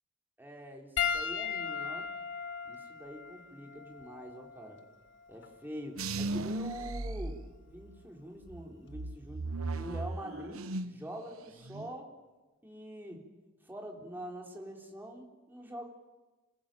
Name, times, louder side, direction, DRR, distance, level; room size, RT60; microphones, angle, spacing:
voice 1, 0.4-2.1 2.6-4.8 5.3-7.4 7.7-9.4 9.7-12.1 12.6-13.2 13.6-15.9, equal, 10° right, 1 dB, 3.9 m, -45 dB
Piano, 1.0-5.6 6.6-6.8 8.7-8.8, left 7 dB, 60° left, 1.5 m, -37 dB
sound 1, 6.0-8.0 8.5-11.1 11.4-11.9, right 2 dB, 80° right, 1.1 m, -37 dB
28.0 x 19.0 x 9.1 m, 1.2 s
head